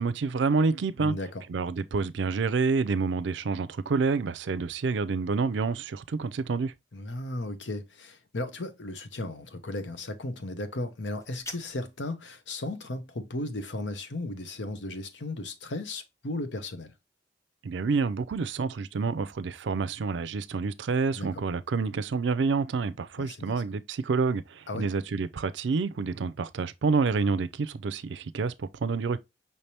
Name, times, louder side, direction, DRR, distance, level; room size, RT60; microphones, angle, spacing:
voice 1, 0.0-1.1 1.5-6.7 17.6-29.2, right 4 dB, 85° right, 0.4 m, -28 dB
voice 2, 1.0-1.4 6.9-16.9 21.1-21.4 23.2-23.6 24.7-24.9, left 2 dB, 85° left, 0.9 m, -35 dB
sound 1, 11.0-12.0, left 1 dB, 15° left, 0.5 m, -44 dB
5.7 x 3.3 x 2.8 m
head